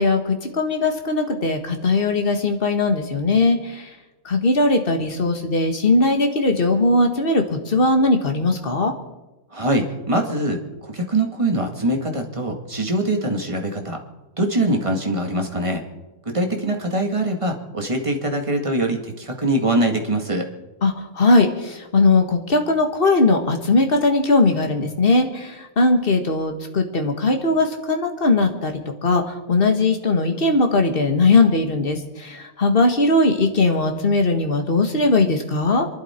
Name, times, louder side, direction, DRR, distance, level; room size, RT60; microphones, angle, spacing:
voice 1, 0.0-3.9 4.2-8.9 20.8-35.9, left 2 dB, 30° left, 5 dB, 1.5 m, -19 dB
voice 2, 9.5-14.0 14.4-15.8 16.2-20.5, right 1 dB, 15° right, 2 dB, 1.7 m, -23 dB
26.5 x 12.0 x 4.4 m, 1.1 s
omnidirectional pair, 2.4 m